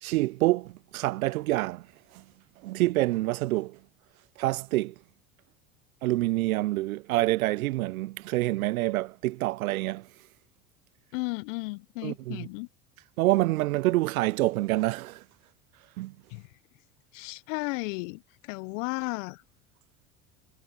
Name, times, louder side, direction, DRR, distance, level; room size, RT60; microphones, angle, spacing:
voice 1, 0.0-3.9 4.4-5.0 6.0-10.2 12.0-12.5 13.2-15.3 16.0-16.2, right 18 dB, 80° right, 0.5 m, -27 dB
voice 2, 11.1-12.7 16.3-16.6 17.1-19.4, left 27 dB, 60° left, 0.6 m, -34 dB
hypercardioid pair, 80°, 42 cm